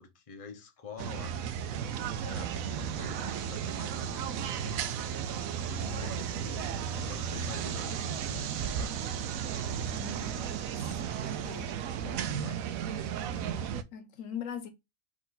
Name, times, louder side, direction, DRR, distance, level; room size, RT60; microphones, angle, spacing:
voice 1, 0.0-1.4 2.2-4.8 5.5-9.2 12.0-12.7, left 5 dB, 30° left, 0.9 m, -46 dB
sound 1, 1.0-13.8, right 8 dB, 85° right, 1.0 m, -34 dB
sound 2, 1.7-12.3, right 6 dB, 60° right, 0.8 m, -47 dB
voice 2, 5.8-6.2 9.9-11.0 11.4-11.8 13.3-14.7, left 7 dB, 80° left, 1.1 m, -43 dB
4.5 x 3.0 x 3.8 m
omnidirectional pair, 1.4 m